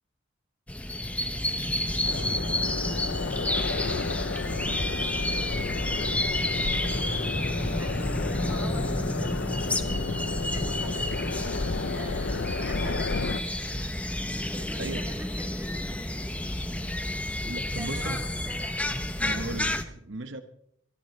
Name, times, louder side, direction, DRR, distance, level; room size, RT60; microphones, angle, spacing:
sound 1, 0.7-19.8, left 1 dB, 5° left, 0.8 m, -30 dB
sound 2, 2.0-13.4, left 3 dB, 60° left, 0.6 m, -32 dB
voice 1, 7.4-9.9 10.2-13.3 14.5-16.0 17.8-18.8, equal, 10° right, 1 dB, 2.7 m, -46 dB
voice 2, 17.4-18.2 19.2-20.4, right 2 dB, 65° right, 9 dB, 1.0 m, -36 dB
23.0 x 14.5 x 3.2 m, 0.69 s
head